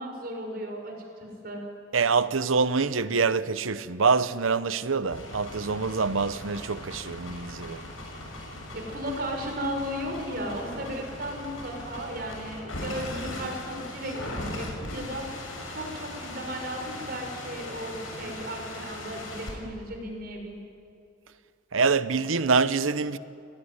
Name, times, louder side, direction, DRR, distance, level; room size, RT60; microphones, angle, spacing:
voice 1, 0.0-1.6 8.7-20.6, equal, 50° right, 5.9 m, -35 dB
voice 2, 1.9-7.8 21.7-23.2, right 4 dB, 85° right, 0.9 m, -25 dB
sound 1, 5.0-19.5, left 1 dB, 90° left, 6.9 m, -39 dB
28.0 x 19.5 x 9.7 m
head